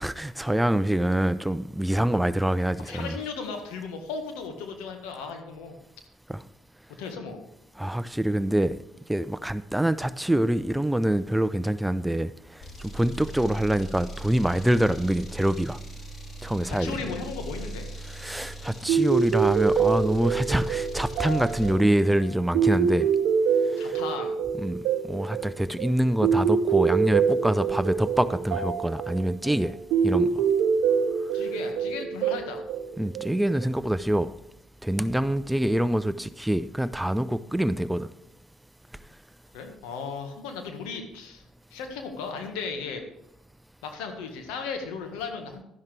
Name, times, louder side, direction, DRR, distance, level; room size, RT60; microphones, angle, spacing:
voice 1, 0.0-3.2 6.3-6.4 7.8-8.8 9.1-12.3 12.8-15.8 16.4-16.9 18.2-23.1 23.7-24.0 24.6-24.8 25.0-29.7 30.0-30.3 33.0-34.3 34.8-38.1, right 1 dB, 5° right, 0.6 m, -25 dB
voice 2, 2.8-5.7 7.0-7.4 16.6-17.9 23.8-24.3 31.3-32.6 39.5-41.4 41.7-43.0 43.8-45.6, left 5 dB, 80° left, 1.6 m, -36 dB
sound 1, 12.6-21.8, right 2 dB, 50° left, 2.7 m, -40 dB
sound 2, 18.9-33.7, right 6 dB, 75° right, 0.8 m, -25 dB
12.0 x 10.5 x 3.4 m
hypercardioid pair, 55°, 0 cm